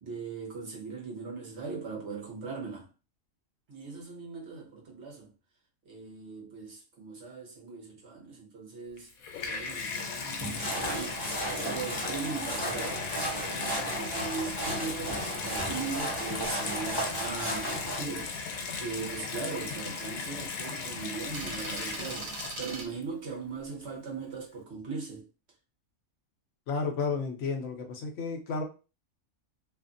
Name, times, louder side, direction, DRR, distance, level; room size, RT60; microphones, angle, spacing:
voice 1, 0.0-2.9 3.7-5.3 5.8-9.1 9.4-11.2 11.6-13.0 13.4-25.3, right 5 dB, 55° right, 1.2 m, -39 dB
Water tap faucet / Bathtub (filling or washing), 9.0-23.0 23.8-23.9, left 5 dB, 90° left, 1.0 m, -37 dB
sound 1, 10.4-18.0, right 1 dB, 15° left, 1.1 m, -34 dB
sound 2, 17.6-22.9, right 3 dB, 75° right, 1.1 m, -42 dB
voice 2, 26.7-28.6, left 4 dB, 65° left, 1.0 m, -32 dB
2.7 x 2.5 x 2.5 m
omnidirectional pair, 1.4 m